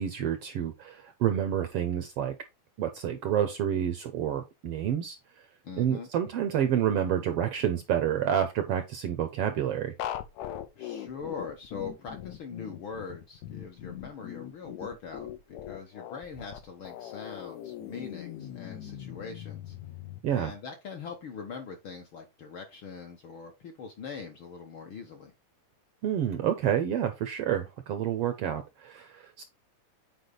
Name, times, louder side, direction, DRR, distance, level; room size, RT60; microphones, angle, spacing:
voice 1, 0.0-2.3 2.8-5.4 5.8-9.9 20.2-20.5 26.0-29.4, right 10 dB, 70° right, 1.5 m, -29 dB
voice 2, 5.6-6.1 10.8-19.7 20.2-25.3, left 5 dB, 60° left, 1.5 m, -42 dB
sound 1, 10.0-20.2, left 11 dB, 75° left, 2.0 m, -40 dB
8.4 x 4.8 x 3.9 m
omnidirectional pair, 3.5 m